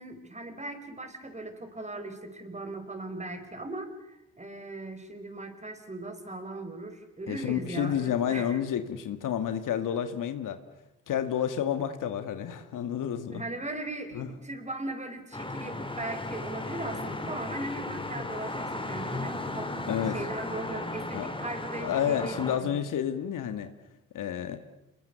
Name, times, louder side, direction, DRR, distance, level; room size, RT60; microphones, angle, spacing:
voice 1, 0.0-8.6 13.3-22.8, right 2 dB, 20° right, 8 dB, 4.8 m, -39 dB
voice 2, 7.3-10.6 11.1-13.4 14.1-14.3 19.9-20.2 21.1-21.3 21.8-23.7 24.1-24.6, left 9 dB, 60° left, 9 dB, 1.9 m, -30 dB
sound 1, 15.3-22.6, left 2 dB, 15° left, 4.4 m, -35 dB
28.0 x 22.0 x 7.0 m, 0.94 s
hypercardioid pair, 55°, 35 cm